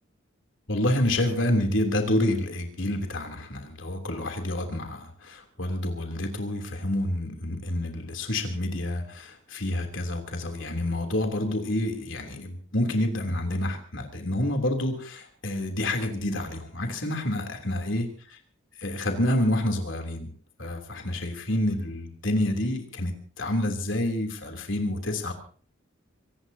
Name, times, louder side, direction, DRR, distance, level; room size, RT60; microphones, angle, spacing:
voice 1, 0.7-18.1 18.8-20.3 20.6-25.3, left 1 dB, 70° left, 4 dB, 3.2 m, -28 dB
25.0 x 18.0 x 2.8 m, 0.43 s
head